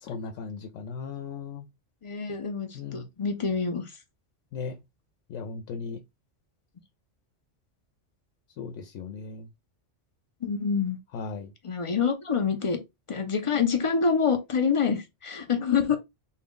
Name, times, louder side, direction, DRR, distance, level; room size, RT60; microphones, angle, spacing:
voice 1, 0.0-1.7 2.7-3.0 4.5-4.8 5.3-6.0 8.6-9.5 11.1-11.5, left 5 dB, 85° left, 0.9 m, -37 dB
voice 2, 2.0-3.9 10.4-11.0 11.6-12.8 13.1-16.0, left 6 dB, 40° left, 0.5 m, -26 dB
3.7 x 2.3 x 3.6 m
omnidirectional pair, 1.3 m